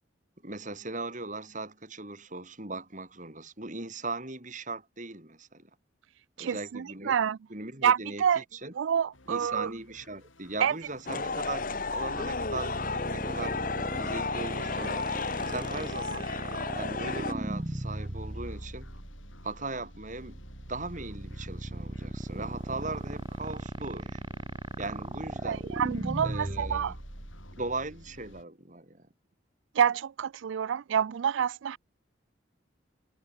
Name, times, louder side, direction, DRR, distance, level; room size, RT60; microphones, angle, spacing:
voice 1, 0.4-5.7 6.4-7.1 7.5-8.7 9.3-13.6 14.0-15.1 15.5-16.3 16.8-18.9 19.4-20.4 20.7-24.2 24.8-25.6 26.2-27.0 27.6-29.1, right 3 dB, 40° right, 4.3 m, -38 dB
voice 2, 6.4-7.4 7.8-8.4 8.8-9.7 10.6-10.7 25.4-26.9 29.8-31.8, right 8 dB, 75° right, 0.4 m, -27 dB
sound 1, 9.1-28.4, left 1 dB, 90° left, 7.0 m, -55 dB
sound 2, 11.1-17.3, left 4 dB, 45° left, 1.4 m, -33 dB
sound 3, 11.3-28.4, right 1 dB, 25° right, 1.1 m, -38 dB
head